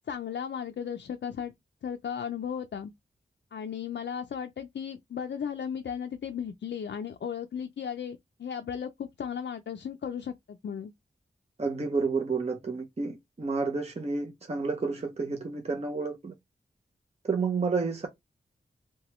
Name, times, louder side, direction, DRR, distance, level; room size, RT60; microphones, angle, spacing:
voice 1, 0.1-1.5 1.8-2.9 3.5-10.9, left 8 dB, 70° left, 0.4 m, -35 dB
voice 2, 11.6-16.3 17.2-18.1, right 4 dB, 35° right, 0.6 m, -30 dB
2.9 x 2.2 x 3.0 m
wide cardioid pair, 60°, 19 cm